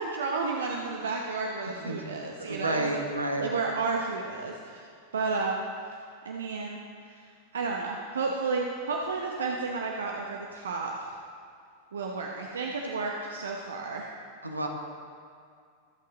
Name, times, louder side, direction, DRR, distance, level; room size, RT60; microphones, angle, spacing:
voice 1, 0.0-3.0 3.4-4.9 5.1-5.6 6.2-7.3 7.5-11.2 11.9-14.1, right 4 dB, 65° right, 1 dB, 0.9 m, -32 dB
voice 2, 2.4-3.5 14.4-14.7, right 1 dB, 80° right, 2 dB, 1.4 m, -30 dB
22.5 x 8.5 x 3.8 m, 2.2 s
figure-of-eight pair, 90°, 0 cm